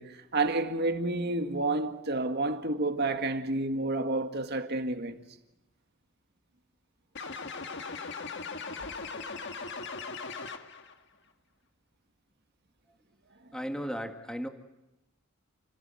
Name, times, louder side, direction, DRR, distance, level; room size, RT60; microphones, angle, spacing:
voice 1, 0.0-5.2, right 2 dB, 50° right, 2.0 m, -30 dB
sound 1, 7.2-10.9, left 4 dB, 55° left, 1.7 m, -39 dB
voice 2, 13.5-14.5, equal, 5° left, 1.9 m, -35 dB
29.5 x 17.0 x 9.2 m
head